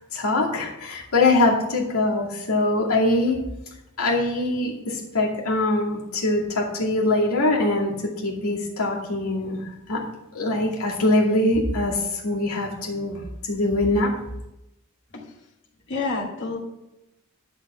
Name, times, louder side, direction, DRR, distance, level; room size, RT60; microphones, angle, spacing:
voice 1, 0.1-3.4 4.0-9.6 9.9-10.0 10.3-14.1, left 2 dB, 90° left, -3 dB, 2.4 m, -23 dB
voice 2, 15.9-16.6, left 3 dB, 55° left, -2 dB, 2.2 m, -28 dB
11.0 x 4.1 x 7.4 m, 0.91 s
head